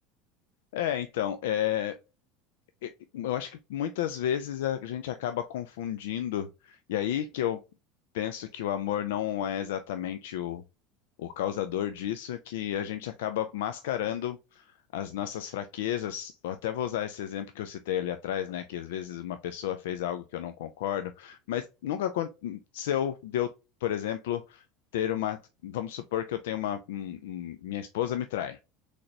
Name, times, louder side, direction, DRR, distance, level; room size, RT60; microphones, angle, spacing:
voice 1, 0.7-2.0 2.8-7.6 8.1-10.6 11.2-14.7 14.9-23.5 23.8-24.6 24.9-28.6, left 11 dB, 80° left, 0.3 m, -32 dB
3.9 x 3.3 x 2.7 m
hypercardioid pair, 90°, 0 cm